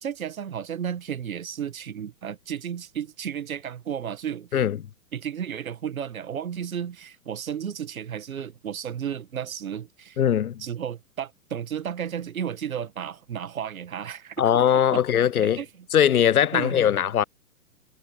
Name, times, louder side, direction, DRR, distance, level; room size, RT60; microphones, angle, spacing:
voice 1, 0.0-4.5 5.1-10.2 10.6-14.4 14.7-15.0 15.6-15.7 16.5-16.9, right 8 dB, 65° right, 1.8 m, -33 dB
voice 2, 10.2-10.6 14.4-15.6 15.9-17.2, left 9 dB, 70° left, 0.7 m, -20 dB
figure-of-eight pair, 115°, 45 cm